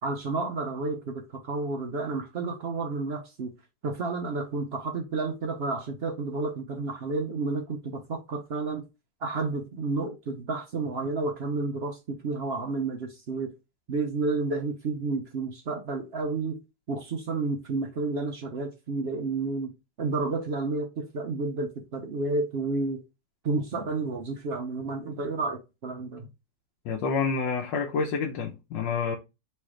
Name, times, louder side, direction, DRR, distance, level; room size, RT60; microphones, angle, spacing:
voice 1, 0.0-3.5 3.8-8.8 9.2-13.5 13.9-16.6 16.9-23.0 23.4-26.3, right 3 dB, 75° right, 0.5 m, -31 dB
voice 2, 26.8-29.2, left 5 dB, 85° left, 1.4 m, -28 dB
3.3 x 3.1 x 4.8 m
omnidirectional pair, 1.9 m